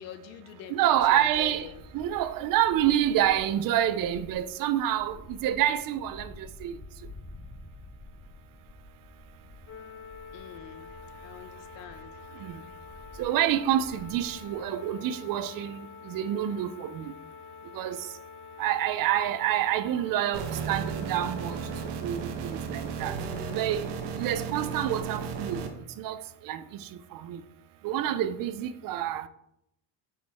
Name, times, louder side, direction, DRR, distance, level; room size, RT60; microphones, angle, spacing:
voice 1, 0.0-1.8 10.3-10.9 11.2-12.1, left 9 dB, 75° left, 0.9 m, -45 dB
voice 2, 0.7-1.7 1.9-6.7 12.4-12.5 13.2-17.1 17.7-18.0 18.6-21.6 22.0-23.2 23.5-23.9 24.2-25.6 26.0-26.6 27.1-27.4 27.8-29.3, right 11 dB, 50° right, 0.5 m, -27 dB
sound 1, 0.9-14.6, left 2 dB, 25° left, 1.2 m, -50 dB
sound 2, 9.7-21.9, left 7 dB, 45° left, 2.8 m, -47 dB
sound 3, 20.3-25.7, right 6 dB, 70° right, 1.3 m, -34 dB
8.6 x 5.1 x 3.5 m
cardioid pair, 140°, 43 cm